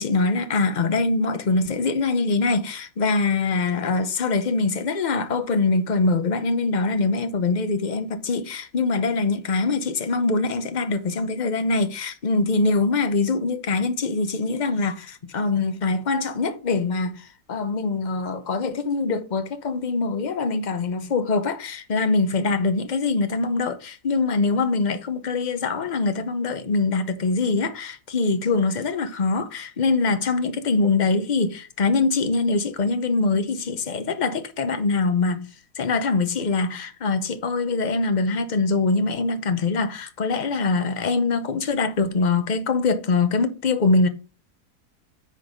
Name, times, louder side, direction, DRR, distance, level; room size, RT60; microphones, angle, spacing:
voice 1, 0.0-35.5 35.8-44.1, left 3 dB, 40° left, 0.7 m, -23 dB
9.7 x 4.1 x 5.0 m
omnidirectional pair, 1.7 m